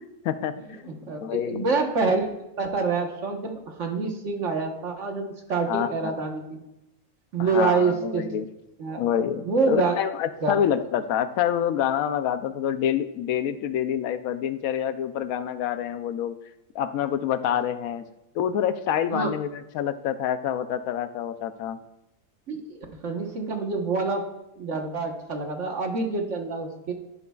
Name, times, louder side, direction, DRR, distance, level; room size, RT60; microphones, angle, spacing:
voice 1, 0.3-0.8 1.2-1.6 5.7-6.2 7.4-8.5 9.0-16.4 16.7-18.1 18.3-21.8, left 9 dB, 75° left, 11 dB, 1.0 m, -27 dB
voice 2, 0.9-2.2 2.6-6.6 7.3-8.3 8.8-9.0 9.4-10.0 10.4-10.6 19.1-19.3 22.5-22.8 23.0-24.2 24.6-26.9, right 4 dB, 55° right, 3 dB, 1.5 m, -26 dB
11.5 x 10.5 x 2.3 m, 0.90 s
omnidirectional pair, 1.5 m